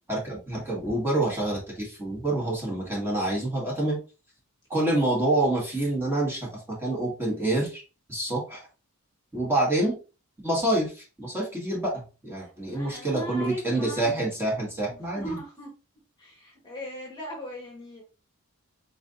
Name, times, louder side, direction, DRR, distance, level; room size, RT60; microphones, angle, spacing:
voice 1, 0.1-4.0 4.7-7.8 8.1-8.6 9.3-9.9 10.4-15.4, right 1 dB, 10° right, -4 dB, 1.6 m, -27 dB
voice 2, 12.7-14.1 14.9-15.7 16.2-18.0, equal, 20° left, -1 dB, 1.2 m, -39 dB
4.8 x 3.9 x 2.5 m, 0.33 s
head